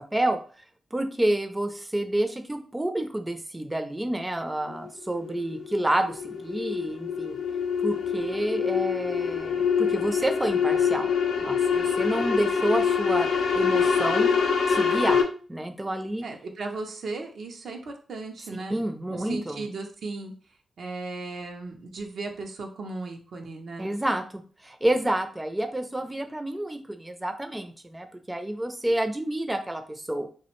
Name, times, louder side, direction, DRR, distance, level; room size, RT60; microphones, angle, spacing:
voice 1, 0.9-7.4 7.8-11.1 11.4-13.3 13.6-14.3 14.7-15.2 15.5-16.3 18.7-19.6 23.8-24.2 24.6-30.3, right 1 dB, 20° right, 7 dB, 0.4 m, -29 dB
sound 1, 4.7-15.2, left 6 dB, 80° left, 0.4 m, -25 dB
voice 2, 16.2-18.8 19.1-20.3 20.8-23.9, right 3 dB, 75° right, 2 dB, 0.5 m, -36 dB
2.4 x 2.1 x 2.9 m, 0.40 s
supercardioid pair, 40°, 0 cm